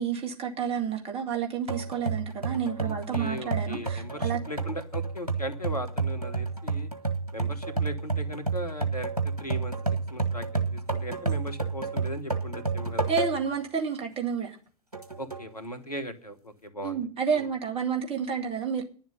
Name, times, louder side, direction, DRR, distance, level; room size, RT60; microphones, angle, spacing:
voice 1, 0.0-4.4 13.1-14.6 16.8-18.8, right 6 dB, 30° right, 2.1 m, -30 dB
sound 1, 1.7-13.6 14.1-14.2 14.9-15.5, right 4 dB, 85° right, 1.6 m, -31 dB
voice 2, 2.8-6.9 7.3-9.1 9.4-13.1 15.2-17.0 17.4-17.5, equal, 90° left, 1.3 m, -38 dB
10.5 x 7.3 x 9.3 m
figure-of-eight pair, 85°, 19 cm